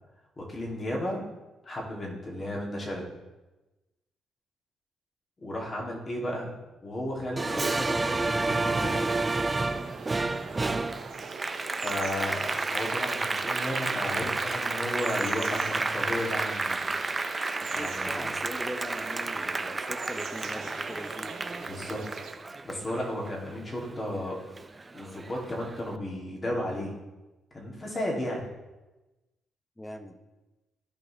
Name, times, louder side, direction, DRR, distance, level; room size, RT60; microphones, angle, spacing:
voice 1, 0.4-1.2 1.6-3.1 5.4-6.5 6.8-9.0 11.8-16.9 17.2-17.3 17.7-18.3 21.6-22.2 22.6-24.4 24.9-27.0 27.5-28.5, left 1 dB, 30° left, -3 dB, 2.8 m, -34 dB
Applause, 7.4-24.2 24.6-25.7, right 3 dB, 20° right, 0.5 m, -31 dB
sound 1, 8.7-22.4, right 6 dB, 65° right, 0.8 m, -43 dB
voice 2, 17.7-21.3 29.8-30.2, left 1 dB, 10° left, 7 dB, 1.0 m, -40 dB
15.5 x 5.5 x 3.4 m, 1.1 s
cardioid pair, 90°, 0 cm